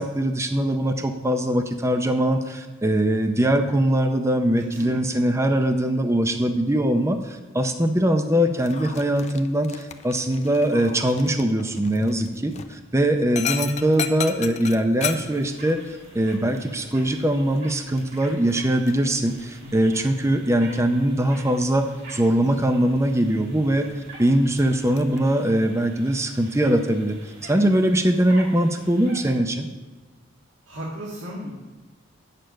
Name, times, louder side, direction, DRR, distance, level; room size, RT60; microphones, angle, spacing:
voice 1, 0.0-15.8 16.1-21.8 22.1-23.9 24.2-27.2 27.4-29.7, right 1 dB, 15° right, 6 dB, 0.6 m, -22 dB
Dog, 8.6-25.2, left 7 dB, 35° left, 0.5 m, -38 dB
sound 1, 14.2-29.4, right 2 dB, 50° right, 2.7 m, -47 dB
voice 2, 19.6-19.9 30.6-31.5, equal, 65° right, -3 dB, 1.8 m, -35 dB
9.2 x 6.7 x 6.3 m, 1.3 s
head